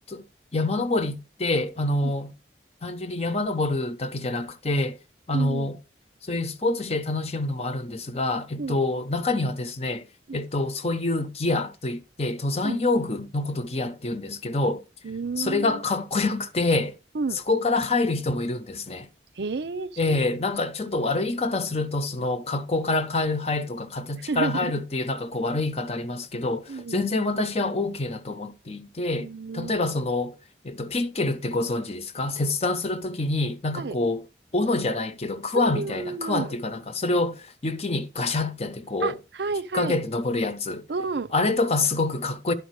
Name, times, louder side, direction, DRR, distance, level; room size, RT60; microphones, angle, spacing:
voice 1, 0.5-2.3 2.8-5.0 5.3-5.8 6.3-10.1 10.3-14.8 15.4-17.0 17.5-19.1 20.0-29.3 29.5-30.4 30.6-34.2 34.5-39.2 39.7-40.8 41.3-42.5, left 2 dB, 35° left, 0.9 m, -26 dB
voice 2, 5.3-5.7 8.6-8.8 10.3-10.4 12.6-12.8 15.0-15.8 17.1-17.4 19.4-20.2 24.3-24.7 26.7-27.0 29.2-29.8 33.8-34.0 35.5-36.5 39.0-40.0 40.9-41.3, right 4 dB, 65° right, 0.6 m, -31 dB
11.5 x 5.0 x 4.7 m
head